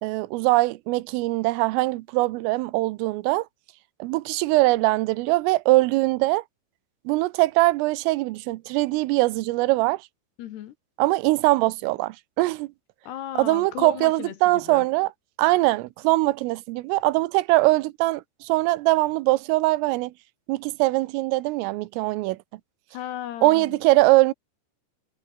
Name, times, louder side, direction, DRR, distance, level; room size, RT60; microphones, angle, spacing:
voice 1, 0.0-3.5 4.0-6.4 7.1-10.1 11.0-12.7 13.4-15.1 15.4-20.1 20.5-22.4 23.4-24.3, right 20 dB, 90° right, 3.4 m, -22 dB
voice 2, 10.4-10.7 13.0-14.9 22.9-23.8, left 12 dB, 70° left, 3.0 m, -36 dB
omnidirectional pair, 5.7 m